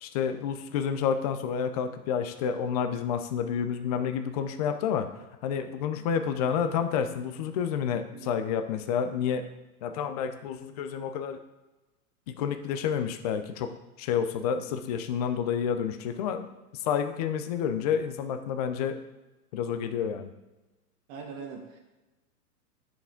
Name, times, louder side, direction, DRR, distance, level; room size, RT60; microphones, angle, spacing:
voice 1, 0.0-5.1 5.4-9.4 9.8-11.4 12.3-13.7 14.0-16.5 16.8-19.0 19.5-20.3, left 7 dB, 30° left, 8 dB, 0.4 m, -29 dB
voice 2, 21.1-21.8, right 5 dB, 30° right, 1 dB, 1.3 m, -41 dB
10.5 x 5.0 x 3.8 m, 1.1 s
hypercardioid pair, 135°, 45 cm